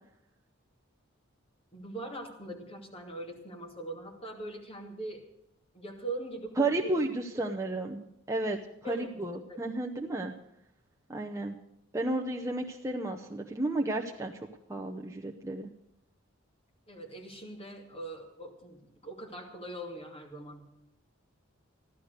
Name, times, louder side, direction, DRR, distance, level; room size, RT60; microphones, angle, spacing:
voice 1, 1.7-5.2 5.7-7.0 8.8-9.1 9.5-9.6 16.9-20.7, right 2 dB, 30° left, 2 dB, 2.5 m, -41 dB
voice 2, 6.6-10.3 11.1-11.6 11.9-14.4 14.7-15.7, right 2 dB, 15° right, 0 dB, 0.7 m, -32 dB
14.5 x 12.0 x 6.5 m, 0.81 s
head